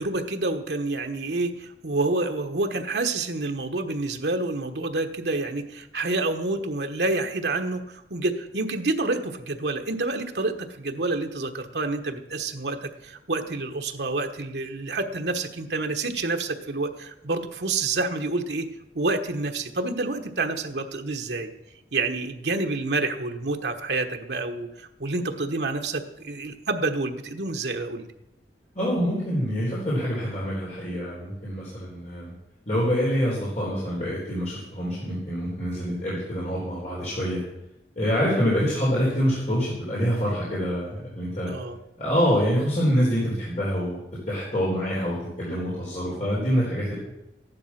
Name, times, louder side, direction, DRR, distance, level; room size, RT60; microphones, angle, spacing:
voice 1, 0.0-18.7 18.9-21.5 21.9-28.1 41.5-41.8, right 2 dB, 75° right, 5 dB, 1.3 m, -28 dB
voice 2, 28.8-32.3 32.7-37.4 38.0-41.5 42.0-44.0 44.3-46.9, equal, 40° left, -7 dB, 3.9 m, -26 dB
14.5 x 10.5 x 5.9 m, 0.90 s
head